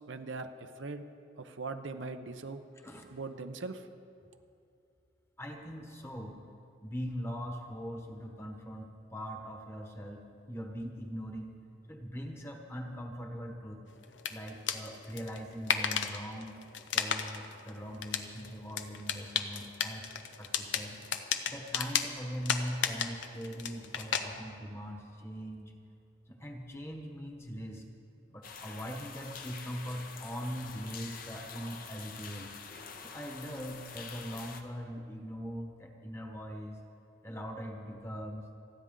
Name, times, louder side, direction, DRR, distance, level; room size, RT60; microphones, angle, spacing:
voice 1, 0.1-1.0 1.4-2.6 3.1-3.9, right 3 dB, 85° right, 8 dB, 0.8 m, -40 dB
voice 2, 5.4-6.4 6.8-11.6 11.9-13.8 14.3-16.6 16.9-21.0 21.4-25.7 26.3-27.8 28.3-32.5 33.0-36.8 37.2-38.5, equal, 15° left, 3 dB, 1.2 m, -41 dB
sound 1, 14.0-24.2, left 8 dB, 75° left, 0.8 m, -34 dB
sound 2, 28.4-34.6, left 5 dB, 50° left, 0.9 m, -46 dB
28.5 x 9.6 x 3.8 m, 2.5 s
head